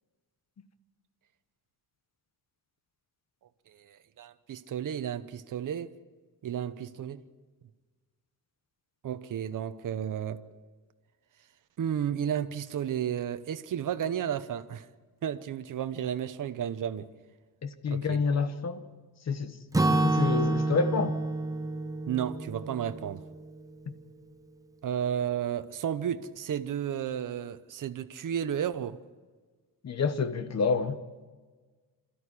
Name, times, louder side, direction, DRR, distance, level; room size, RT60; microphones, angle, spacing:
voice 1, 3.7-5.9 6.4-7.2 9.0-10.4 11.8-14.9 15.2-17.1 17.9-18.2 22.1-23.2 24.8-29.0, right 9 dB, 60° right, 0.9 m, -32 dB
voice 2, 17.6-18.8 19.3-19.6 19.9-21.2 29.8-31.0, left 5 dB, 45° left, 1.3 m, -28 dB
Acoustic guitar / Strum, 19.7-23.7, right 2 dB, 10° right, 0.7 m, -28 dB
26.5 x 13.5 x 9.9 m
wide cardioid pair, 175°, 36 cm